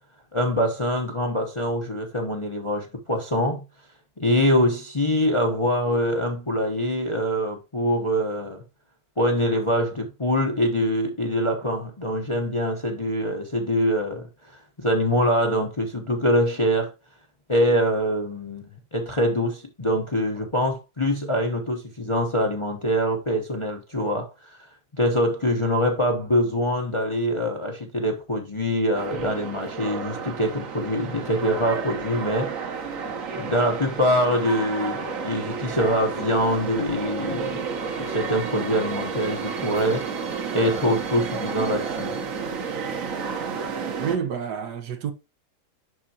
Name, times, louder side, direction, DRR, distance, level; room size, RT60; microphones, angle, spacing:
voice 1, 0.3-3.6 4.2-8.6 9.2-16.9 17.5-24.7 24.9-32.5 33.3-37.6 38.0-40.1 40.5-42.1, equal, 25° left, 0.7 m, -24 dB
sound 1, 28.9-44.2, right 5 dB, 55° right, 1.3 m, -31 dB
voice 2, 44.0-45.1, right 7 dB, 75° right, 1.5 m, -29 dB
11.0 x 3.7 x 2.8 m
omnidirectional pair, 1.8 m